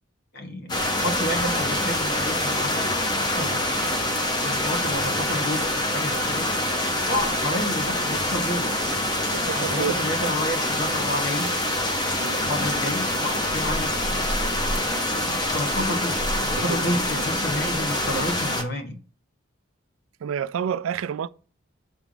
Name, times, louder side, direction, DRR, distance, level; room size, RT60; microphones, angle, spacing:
voice 1, 0.3-2.8 3.4-3.8 4.4-6.5 7.1-8.9 9.5-11.5 12.2-14.4 15.2-16.2 16.5-18.9, left 1 dB, 50° left, 1.3 m, -30 dB
sound 1, 0.7-18.6, left 1 dB, 20° left, 0.7 m, -25 dB
voice 2, 9.3-9.9 12.2-12.4 16.6-16.8 20.2-21.3, right 7 dB, 80° right, 0.3 m, -29 dB
7.2 x 3.4 x 3.8 m
head